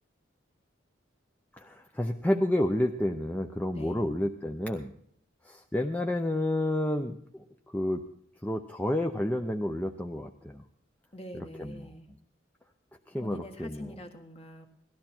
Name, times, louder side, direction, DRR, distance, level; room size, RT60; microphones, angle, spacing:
voice 1, 1.6-4.9 5.4-7.4 7.7-8.0 8.4-10.6 11.3-11.9 13.1-13.9, left 1 dB, 10° left, 3 dB, 0.6 m, -30 dB
voice 2, 3.7-4.1 11.1-12.1 13.2-14.7, left 1 dB, 30° left, 4 dB, 1.7 m, -44 dB
18.0 x 13.0 x 4.4 m, 0.66 s
head